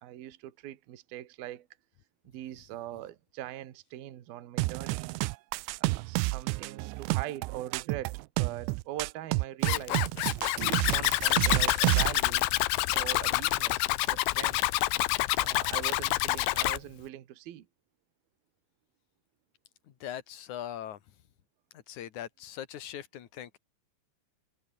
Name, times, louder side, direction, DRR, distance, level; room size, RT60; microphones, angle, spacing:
voice 1, 0.0-1.7 2.2-5.1 5.8-10.1 10.6-12.5 12.9-14.6 15.4-17.7, right 13 dB, 60° right, 3.2 m, -42 dB
sound 1, 4.6-12.2, right 24 dB, 85° right, 2.8 m, -30 dB
Zipper (clothing), 9.6-16.8, left 19 dB, 90° left, 3.3 m, -27 dB
voice 2, 19.9-21.0 21.7-23.6, left 11 dB, 60° left, 2.2 m, -41 dB
omnidirectional pair, 5.5 m